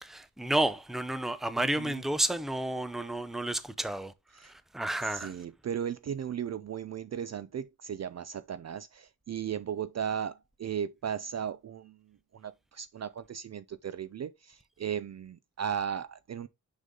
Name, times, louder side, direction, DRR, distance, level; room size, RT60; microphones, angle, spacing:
voice 1, 0.0-4.1 4.4-5.3, right 1 dB, ahead, 0.6 m, -31 dB
voice 2, 1.6-2.0 4.4-4.5 5.1-12.0 12.3-16.5, right 8 dB, 45° right, 0.4 m, -36 dB
6.4 x 5.5 x 3.7 m
wide cardioid pair, 150°, 38 cm